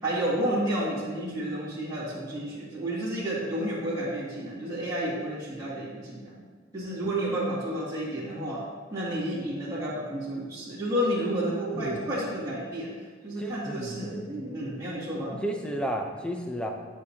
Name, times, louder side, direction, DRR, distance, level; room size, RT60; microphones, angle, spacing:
voice 1, 0.0-6.4 6.7-8.6 8.9-12.9 13.2-15.4, right 1 dB, 20° right, -12 dB, 2.1 m, -31 dB
voice 2, 13.4-14.1 15.4-16.7, equal, 5° left, 3 dB, 0.6 m, -32 dB
11.0 x 6.3 x 2.9 m, 1.4 s
head